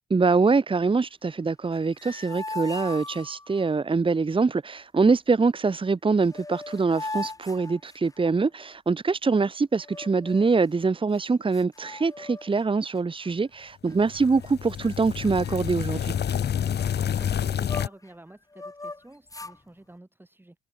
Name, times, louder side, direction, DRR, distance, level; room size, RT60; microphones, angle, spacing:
voice 1, 0.1-16.1, right 4 dB, 25° right, 1.7 m, -24 dB
sound 1, 1.7-3.7 5.9-6.0 6.2-8.4 9.8-10.6 11.1-11.2 11.5-12.6 12.9-13.3 13.9-14.5 14.8-14.9 15.2-18.1 18.5-19.6, left 2 dB, 15° left, 3.4 m, -39 dB
sound 2, 14.0-17.9, left 9 dB, 55° left, 2.3 m, -28 dB
voice 2, 17.0-20.6, right 1 dB, 10° right, 7.5 m, -49 dB
cardioid pair, 90°, 20 cm